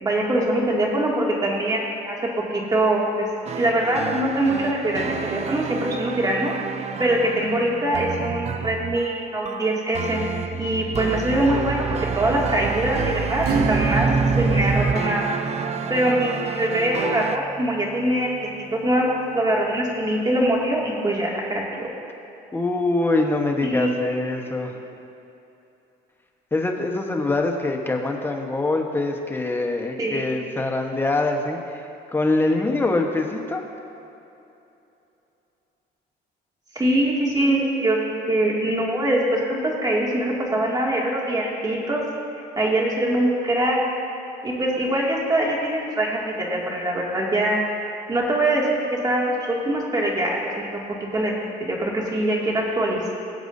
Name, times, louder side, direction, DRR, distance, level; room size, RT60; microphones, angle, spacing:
voice 1, 0.0-2.2 2.5-3.3 3.6-6.5 7.0-10.2 10.6-14.1 14.4-15.3 15.9-21.9 23.6-24.1 30.0-30.3 36.7-42.0 42.6-43.8 44.4-47.6 48.1-50.8 51.1-53.1, right 1 dB, 25° right, -3 dB, 2.3 m, -23 dB
sound 1, 3.5-17.4, right 6 dB, 40° right, 0.5 m, -28 dB
Acoustic guitar / Strum, 13.4-19.7, right 4 dB, 65° right, 1.2 m, -30 dB
voice 2, 22.5-24.8 26.5-31.8 32.1-33.6, left 2 dB, 15° left, 2 dB, 1.1 m, -24 dB
20.5 x 7.9 x 2.7 m, 2.9 s
cardioid pair, 110°, 17 cm